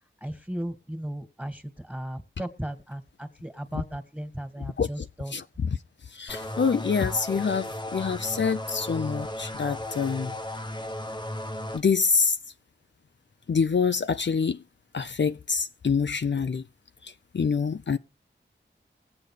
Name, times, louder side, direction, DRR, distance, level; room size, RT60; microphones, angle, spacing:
voice 1, 0.2-5.4, right 1 dB, 5° right, 2.0 m, -36 dB
voice 2, 4.8-5.8 6.1-10.3 11.7-12.4 13.5-14.6 14.9-16.6 17.0-18.0, left 5 dB, 65° left, 0.5 m, -26 dB
sound 1, 6.3-11.8, left 1 dB, 20° left, 1.0 m, -35 dB
21.5 x 8.0 x 3.3 m
wide cardioid pair, 65°, 20 cm